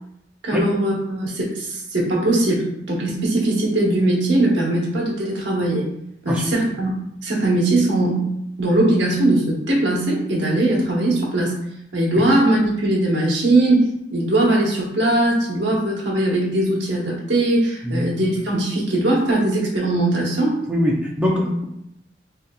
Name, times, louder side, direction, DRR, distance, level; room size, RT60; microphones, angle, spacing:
voice 1, 0.4-5.9 6.2-6.9 7.2-8.3 8.6-11.6 11.9-20.6, right 1 dB, 90° right, -4 dB, 1.1 m, -20 dB
voice 2, 20.7-21.6, equal, 5° right, -3 dB, 0.5 m, -22 dB
3.8 x 2.8 x 2.2 m, 0.78 s
head